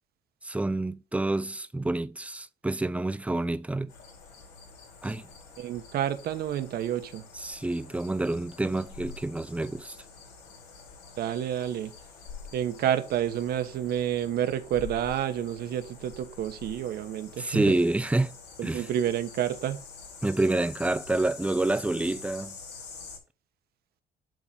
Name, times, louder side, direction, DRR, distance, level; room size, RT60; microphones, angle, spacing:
voice 1, 0.4-3.9 5.0-5.2 7.4-10.0 17.4-18.3 18.6-18.8 20.2-22.6, right 2 dB, 10° right, 0.6 m, -28 dB
sound 1, 3.9-23.2, left 5 dB, 85° left, 4.5 m, -47 dB
voice 2, 5.6-7.3 11.2-12.0 12.5-17.7 18.6-19.8, right 10 dB, 65° right, 1.3 m, -29 dB
10.5 x 3.9 x 5.7 m
cardioid pair, 110°, 17 cm